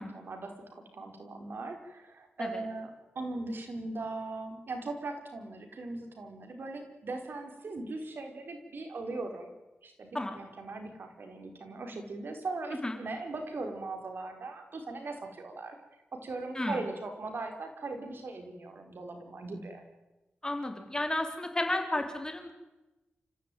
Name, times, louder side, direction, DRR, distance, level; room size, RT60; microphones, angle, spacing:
voice 1, 0.0-2.9 3.1-9.5 9.8-15.8 16.1-19.8, right 3 dB, 65° right, 5 dB, 4.6 m, -39 dB
voice 2, 20.4-22.5, left 1 dB, 20° left, 4 dB, 4.2 m, -32 dB
29.0 x 15.5 x 9.3 m, 1.1 s
wide cardioid pair, 95°, 4 cm